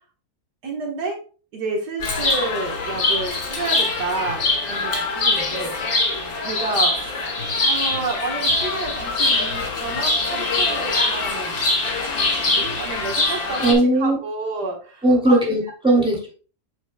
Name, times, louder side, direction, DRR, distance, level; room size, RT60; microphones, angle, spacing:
voice 1, 0.6-1.2 1.5-5.8 6.3-7.2 7.6-11.5 12.2-15.4, right 3 dB, 85° right, 1 dB, 1.9 m, -30 dB
Chirp tweet, 2.0-13.7, left 2 dB, 65° left, 2.0 m, -23 dB
voice 2, 13.6-14.2 15.0-16.3, right 1 dB, 5° right, -4 dB, 2.5 m, -18 dB
7.3 x 5.9 x 2.2 m, 0.38 s
omnidirectional pair, 1.7 m